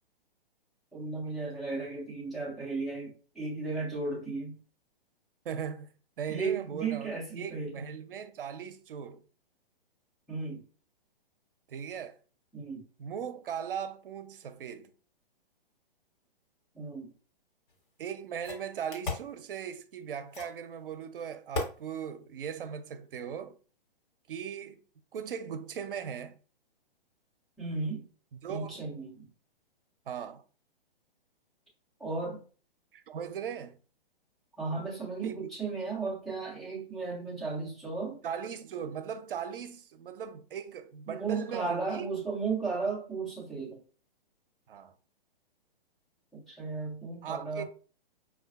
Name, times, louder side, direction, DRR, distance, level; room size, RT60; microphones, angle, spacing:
voice 1, 0.9-4.6 6.3-7.8 10.3-10.6 12.5-12.9 16.7-17.1 27.6-28.1 28.5-29.3 32.0-32.4 34.6-38.2 41.1-43.8 46.3-47.6, right 4 dB, ahead, 0.3 m, -35 dB
voice 2, 5.4-9.2 11.7-12.2 13.0-14.9 18.0-23.6 24.3-24.8 25.1-26.4 28.3-28.8 30.1-30.4 32.9-33.8 35.2-35.4 38.2-42.1 44.7-44.9 47.2-47.6, right 8 dB, 65° right, 0.5 m, -39 dB
sound 1, 17.7-17.8 18.4-19.3 20.3-20.6 21.5-21.8, left 3 dB, 60° left, 1.3 m, -35 dB
4.9 x 2.4 x 2.3 m
figure-of-eight pair, 125°, 29 cm